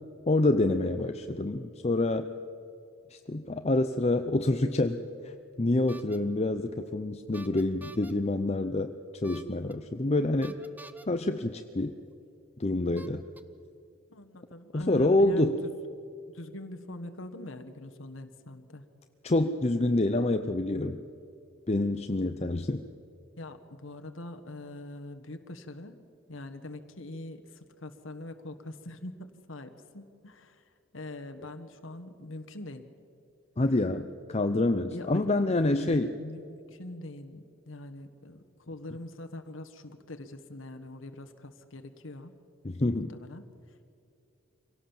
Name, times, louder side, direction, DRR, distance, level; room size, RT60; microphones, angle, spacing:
voice 1, 0.3-2.3 3.1-5.3 5.6-8.9 9.2-10.6 11.1-12.0 12.6-13.2 14.7-15.6 19.2-21.0 21.7-22.8 33.6-36.1 42.6-43.1, left 2 dB, 30° left, 8 dB, 0.6 m, -27 dB
sound 1, 5.9-6.2 7.3-8.1 9.2-9.7 10.4-11.1 12.1-12.2 13.0-13.4, right 2 dB, 10° right, 0.8 m, -48 dB
voice 2, 14.1-15.7 16.3-18.8 23.4-26.0 26.3-32.9 34.9-35.3 35.7-42.3 42.9-44.0, left 1 dB, 70° left, 7 dB, 1.4 m, -43 dB
25.5 x 17.5 x 7.2 m, 2.5 s
head